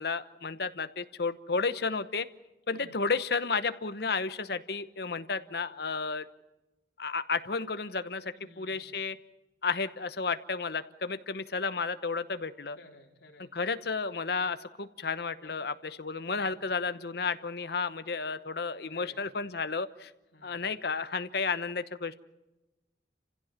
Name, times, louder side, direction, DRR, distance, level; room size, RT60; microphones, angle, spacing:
voice 1, 0.0-2.3 2.7-6.2 7.0-9.2 9.6-12.8 13.5-20.1 20.4-22.1, left 4 dB, 65° left, 12 dB, 1.0 m, -32 dB
voice 2, 8.3-8.9 12.8-13.5 15.4-15.6 16.3-16.6 18.9-19.2 20.3-20.6, left 2 dB, 80° left, 0 dB, 3.9 m, -55 dB
29.0 x 16.0 x 7.4 m, 1.0 s
head